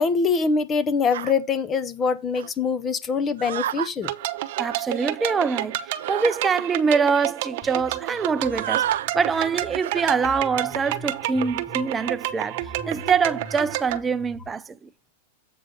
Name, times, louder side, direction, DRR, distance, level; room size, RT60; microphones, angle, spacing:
voice 1, 0.0-4.1, left 5 dB, 25° left, 0.8 m, -23 dB
sound 1, 1.1-1.3 2.3-2.5 3.4-3.9 4.4-4.8 6.0-6.4 7.0-7.1 7.3-7.5 8.4-9.1 9.8-10.2 10.7-11.0, right 11 dB, 75° right, 0.4 m, -31 dB
sound 2, 4.0-14.0, right 14 dB, 55° right, 0.8 m, -30 dB
voice 2, 4.6-8.9 9.1-14.9, right 5 dB, 15° right, 0.5 m, -24 dB
sound 3, 7.6-14.5, left 1 dB, ahead, 1.4 m, -44 dB
8.0 x 5.0 x 5.0 m
hypercardioid pair, 130°, 0 cm